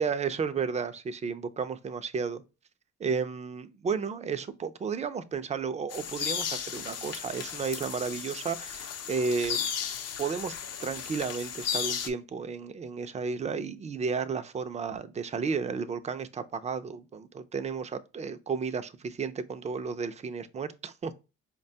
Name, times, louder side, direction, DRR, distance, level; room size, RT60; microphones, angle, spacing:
voice 1, 0.0-2.4 3.0-9.7 10.2-10.5 10.8-21.1, right 5 dB, 25° right, 0.4 m, -33 dB
sound 1, 5.9-12.1, left 8 dB, 55° left, 0.6 m, -35 dB
4.6 x 2.2 x 2.6 m
cardioid pair, 90°, 30 cm